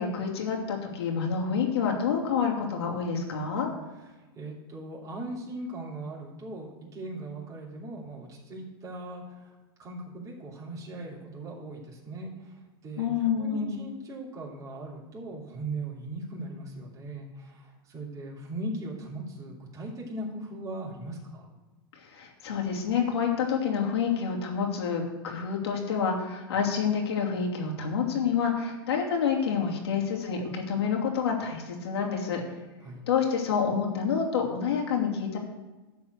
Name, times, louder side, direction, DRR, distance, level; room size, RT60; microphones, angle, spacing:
voice 1, 0.0-3.7 13.0-13.8 22.0-32.4 33.1-35.4, left 6 dB, 85° left, 0 dB, 2.7 m, -28 dB
voice 2, 4.0-9.5 9.8-21.5 32.8-33.0, right 2 dB, 25° right, -5 dB, 2.9 m, -39 dB
11.5 x 4.4 x 8.1 m, 1.2 s
supercardioid pair, 130°, 13 cm